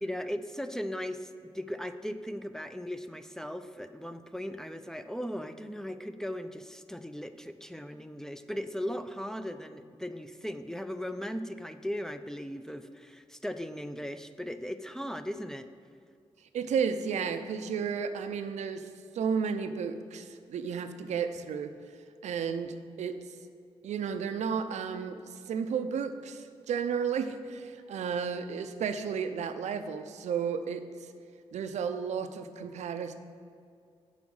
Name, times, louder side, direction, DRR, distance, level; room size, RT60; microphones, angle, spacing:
voice 1, 0.0-15.7, equal, 5° left, 8 dB, 0.4 m, -38 dB
voice 2, 16.5-18.9 19.1-21.7 22.2-23.4 23.8-31.1 31.5-33.1, right 6 dB, 90° right, 9 dB, 0.5 m, -33 dB
7.2 x 5.1 x 6.3 m, 2.3 s
cardioid pair, 70°, 11 cm